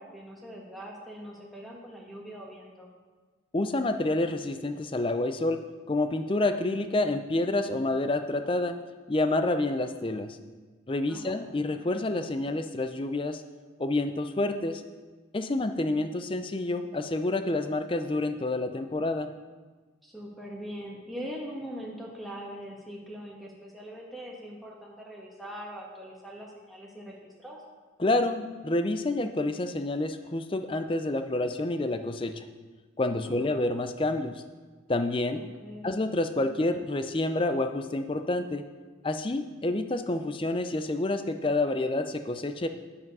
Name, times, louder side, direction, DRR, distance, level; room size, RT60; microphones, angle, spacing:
voice 1, 0.0-2.9 11.1-11.4 20.0-27.6 33.2-33.3 35.3-35.9, equal, ahead, -2 dB, 1.4 m, -42 dB
voice 2, 3.5-8.7 9.1-10.4 10.9-13.4 13.8-14.8 15.3-19.3 28.0-32.5 33.0-34.4 34.9-35.4 35.8-38.6 39.0-42.7, left 2 dB, 25° left, 9 dB, 0.5 m, -28 dB
9.7 x 7.8 x 5.5 m, 1.4 s
head